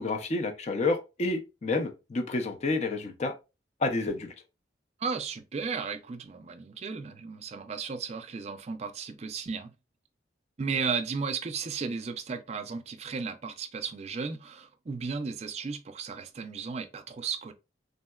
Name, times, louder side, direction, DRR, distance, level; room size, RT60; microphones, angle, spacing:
voice 1, 0.0-3.3 3.8-4.3, left 3 dB, 35° left, 0.5 m, -29 dB
voice 2, 5.0-9.7 10.6-17.5, right 5 dB, 35° right, 0.4 m, -34 dB
3.6 x 2.1 x 2.3 m
head